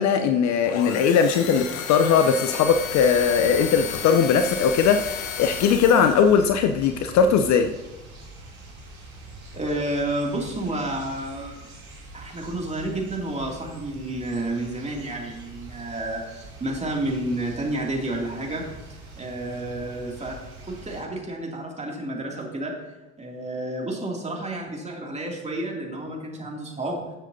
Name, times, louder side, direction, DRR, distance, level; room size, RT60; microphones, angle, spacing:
voice 1, 0.0-7.7, left 6 dB, 40° left, 7 dB, 0.6 m, -19 dB
sound 1, 0.6-6.4, left 8 dB, 75° left, 1.1 m, -33 dB
sound 2, 2.6-21.0, right 2 dB, 80° right, 3.0 m, -44 dB
voice 2, 9.5-11.6 12.1-18.6 19.1-20.4 20.7-22.7 23.2-27.0, right 1 dB, 15° right, -1 dB, 2.6 m, -30 dB
13.5 x 7.3 x 2.7 m, 1.1 s
hypercardioid pair, 75°, 41 cm